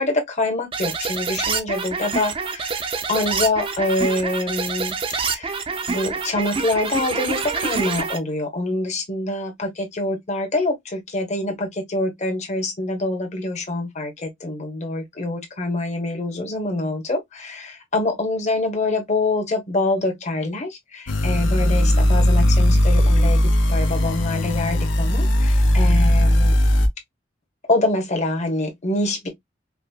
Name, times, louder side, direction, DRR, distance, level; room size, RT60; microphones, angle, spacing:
voice 1, 0.0-5.5 5.9-23.4 23.7-26.5 27.7-29.3, left 2 dB, 40° left, 1.1 m, -25 dB
sound 1, 0.7-8.2, right 5 dB, 30° right, 0.5 m, -26 dB
sound 2, 21.1-26.9, left 1 dB, 90° left, 0.7 m, -17 dB
4.9 x 2.0 x 2.3 m
head